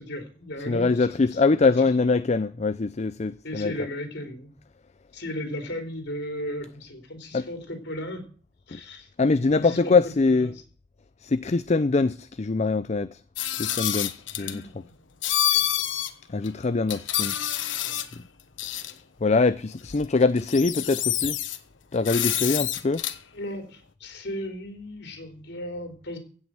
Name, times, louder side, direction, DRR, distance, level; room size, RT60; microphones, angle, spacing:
voice 1, 0.0-1.1 1.8-1.9 3.4-4.5 5.1-8.2 8.7-9.1 9.5-9.9 10.2-10.5 14.4-15.0 15.5-16.0 17.8-18.0 23.3-26.2, left 1 dB, 60° left, 3.6 m, -36 dB
voice 2, 0.7-3.7 7.3-7.5 8.7-8.8 9.2-10.5 11.2-13.2 13.6-14.6 16.3-17.4 18.1-18.2 19.2-21.4 21.9-23.0, left 3 dB, 35° left, 0.5 m, -23 dB
sound 1, 13.4-14.6 15.2-16.1 16.4-16.5 16.9-18.1 18.6-18.9 19.9-20.0 20.4-21.6 22.0-23.2, left 11 dB, 80° left, 1.2 m, -27 dB
16.0 x 6.2 x 7.6 m
head